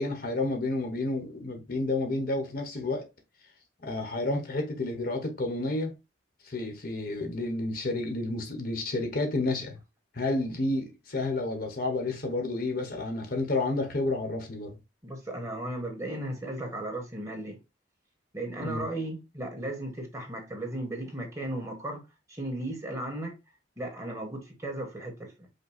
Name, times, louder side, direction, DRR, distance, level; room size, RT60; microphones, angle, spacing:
voice 1, 0.0-3.1 3.8-5.9 6.4-9.8 10.1-14.8 18.6-18.8, left 2 dB, 55° left, 1.1 m, -30 dB
voice 2, 15.0-17.6 18.3-22.0 22.3-23.4 23.8-25.5, right 1 dB, 15° right, 1.4 m, -35 dB
5.2 x 2.2 x 4.1 m
head